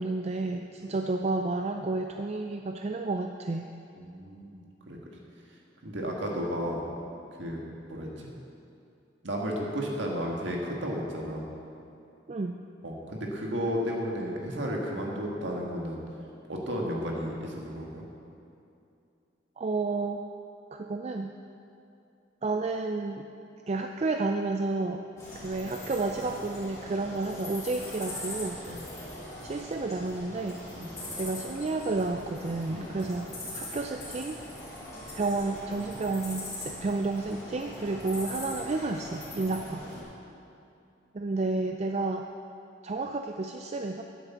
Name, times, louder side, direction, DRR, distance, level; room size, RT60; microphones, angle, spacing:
voice 1, 0.0-3.7 12.3-12.6 19.6-20.2 20.7-21.3 22.4-23.3 23.7-25.0 25.4-28.6 29.4-30.6 31.2-34.4 35.1-39.9 41.1-42.3 42.8-44.0, right 3 dB, 35° right, 5 dB, 0.4 m, -31 dB
voice 2, 4.0-4.6 4.9-5.0 5.8-6.8 7.4-7.6 7.9-8.3 9.2-11.5 12.8-16.0 16.5-18.0 28.7-28.8 30.7-30.9 32.7-33.0, equal, 75° right, -1 dB, 1.8 m, -33 dB
sound 1, 25.2-40.0, left 1 dB, 15° left, 3.4 m, -41 dB
10.0 x 8.2 x 7.2 m, 2.6 s
head